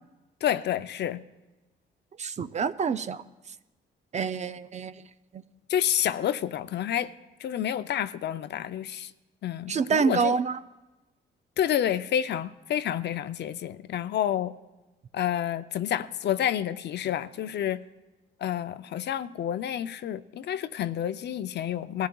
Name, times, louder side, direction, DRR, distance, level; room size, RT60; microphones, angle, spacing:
voice 1, 0.4-1.2 5.7-7.1 7.4-9.1 9.4-10.3 11.6-14.5 15.1-17.8 18.4-22.1, left 10 dB, 60° left, 13 dB, 0.5 m, -29 dB
voice 2, 2.2-3.2 4.1-5.1 5.3-5.4 9.7-10.6, right 5 dB, 35° right, 12 dB, 0.4 m, -27 dB
20.5 x 14.5 x 2.3 m, 1.1 s
cardioid pair, 90°, 20 cm